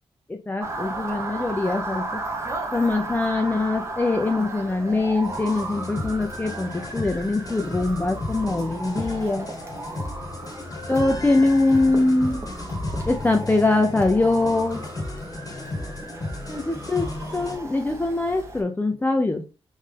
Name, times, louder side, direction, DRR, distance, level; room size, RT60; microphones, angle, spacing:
voice 1, 0.3-2.2 2.7-9.5 10.9-12.4 13.1-14.8 16.5-17.1 17.3-19.4, left 2 dB, 15° left, 3 dB, 0.5 m, -23 dB
Motor vehicle (road) / Siren, 0.6-18.6, right 2 dB, 30° right, 0.9 m, -35 dB
sound 1, 5.2-17.6, left 2 dB, 35° left, 1.1 m, -34 dB
3.7 x 2.6 x 3.3 m, 0.31 s
cardioid pair, 85°, 10 cm